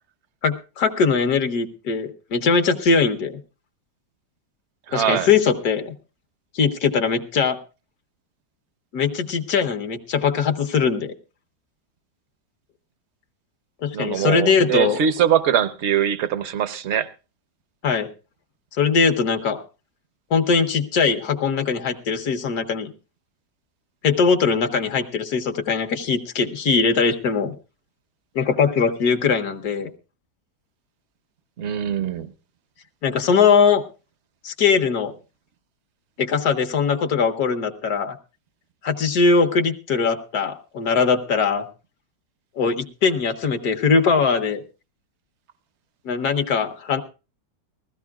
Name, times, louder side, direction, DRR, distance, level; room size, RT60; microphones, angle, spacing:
voice 1, 0.4-3.4 4.9-5.9 6.5-7.6 8.9-11.1 13.8-15.0 17.8-18.1 18.7-19.6 20.3-22.9 24.0-27.5 28.3-29.9 33.0-33.8 34.4-35.1 36.2-38.2 38.8-41.7 42.6-44.6 46.0-47.0, left 5 dB, 65° left, 1.4 m, -21 dB
voice 2, 4.9-5.3 13.9-17.1 31.6-32.3, right 9 dB, 55° right, 0.8 m, -22 dB
20.5 x 15.0 x 2.3 m
omnidirectional pair, 1.8 m